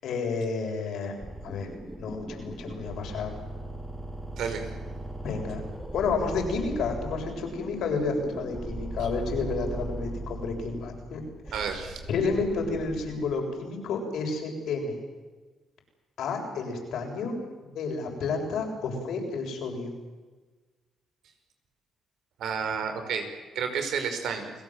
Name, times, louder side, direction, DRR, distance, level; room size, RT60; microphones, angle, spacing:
voice 1, 0.0-1.2 1.4-1.7 2.0-3.3 5.2-5.6 5.9-11.2 12.1-15.0 16.2-17.3 17.7-19.9, left 4 dB, 75° left, 2 dB, 7.2 m, -30 dB
sound 1, 1.2-13.4, right 1 dB, 10° right, 4.7 m, -39 dB
voice 2, 4.4-4.7 9.0-9.1 11.5-12.0 22.4-23.3 23.6-24.5, right 6 dB, 75° right, 6 dB, 5.1 m, -31 dB
29.5 x 18.5 x 7.7 m, 1.3 s
cardioid pair, 90°, 0 cm